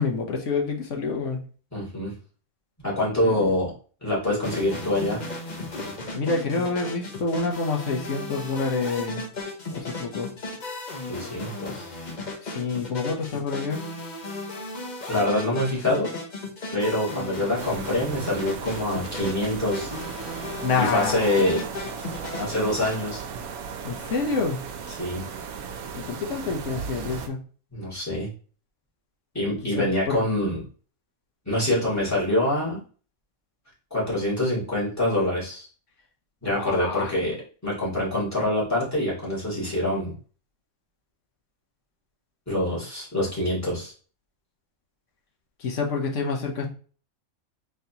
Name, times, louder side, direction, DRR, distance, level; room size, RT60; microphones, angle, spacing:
voice 1, 0.0-1.4 3.2-3.5 6.1-9.3 9.7-10.3 12.4-13.8 20.3-21.2 23.8-24.6 25.9-27.4 29.6-30.2 36.4-37.1 45.6-46.7, left 4 dB, 60° left, 1 dB, 1.1 m, -28 dB
voice 2, 1.7-2.1 2.8-3.7 4.0-5.2 11.1-11.9 15.1-16.1 16.7-19.9 20.8-21.6 22.3-23.2 25.0-25.2 27.7-28.3 29.3-30.6 31.5-32.8 33.9-35.7 36.4-37.4 37.6-40.1 42.5-43.9, left 1 dB, 10° left, -8 dB, 2.1 m, -25 dB
sound 1, 4.4-23.0, left 2 dB, 35° left, 1.0 m, -35 dB
sound 2, 17.5-27.3, right 6 dB, 90° right, 1.1 m, -36 dB
4.2 x 3.2 x 2.8 m, 0.40 s
omnidirectional pair, 1.5 m